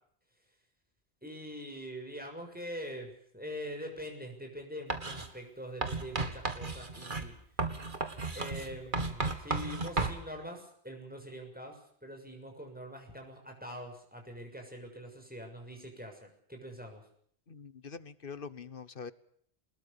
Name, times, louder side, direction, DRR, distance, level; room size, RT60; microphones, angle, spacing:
voice 1, 1.2-7.4 8.3-17.0, equal, 10° right, 2 dB, 6.8 m, -44 dB
Writing, 4.9-5.3 5.8-10.2, right 3 dB, 50° right, 2.2 m, -34 dB
voice 2, 17.5-19.1, left 5 dB, 55° left, 16 dB, 1.3 m, -44 dB
24.0 x 21.0 x 7.1 m, 0.64 s
omnidirectional pair, 1.1 m